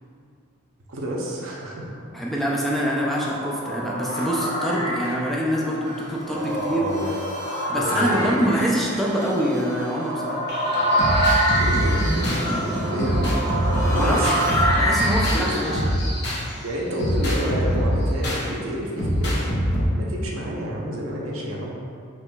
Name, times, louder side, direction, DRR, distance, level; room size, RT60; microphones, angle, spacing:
voice 1, 0.9-1.8 6.3-7.1 7.7-8.5 11.5-12.3 12.5-12.7 12.9-13.3 13.9-14.3 14.8-15.0 15.4-15.6 16.6-19.4 19.9-21.8, right 1 dB, 80° right, -2 dB, 0.7 m, -29 dB
voice 2, 2.1-6.9 7.7-10.4 13.8-14.3 14.8-15.8, equal, ahead, -4 dB, 0.4 m, -25 dB
sound 1, 2.5-15.9, equal, 75° left, 1.1 m, -26 dB
sound 2, 5.8-15.8, right 1 dB, 35° right, 0.6 m, -41 dB
sound 3, 10.5-16.5 17.0-18.4 19.0-19.8, equal, 55° left, 0.9 m, -24 dB
5.6 x 3.1 x 2.3 m, 2.4 s
head